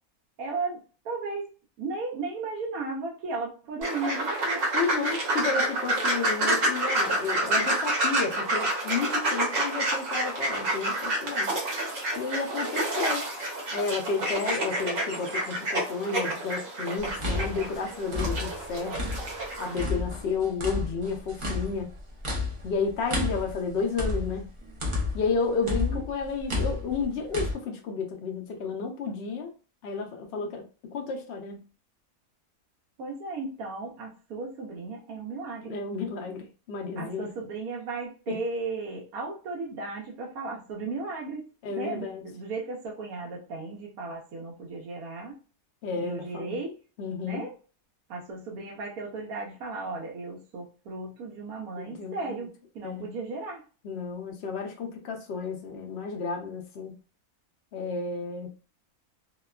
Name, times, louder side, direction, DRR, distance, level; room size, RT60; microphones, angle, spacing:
voice 1, 0.4-1.5 1.8-4.7 25.6-26.0 33.0-35.8 37.0-41.4 41.7-45.4 45.9-46.8 47.2-47.5 48.1-53.6, right 3 dB, 85° right, 1.1 m, -35 dB
sound 1, 3.8-19.8, right 1 dB, 65° right, 1.2 m, -29 dB
voice 2, 4.7-11.5 12.2-13.3 13.7-19.0 19.6-21.9 22.6-24.5 25.1-29.5 29.8-31.7 35.6-37.3 38.3-38.4 41.6-42.2 45.8-46.6 47.0-47.4 51.8-52.5 52.8-53.1 53.8-57.0 57.7-58.5, left 4 dB, 65° left, 0.6 m, -32 dB
sound 2, 17.0-19.4 19.8-25.3 25.7-27.5, left 2 dB, 35° right, 0.5 m, -31 dB
2.8 x 2.1 x 2.3 m
omnidirectional pair, 1.5 m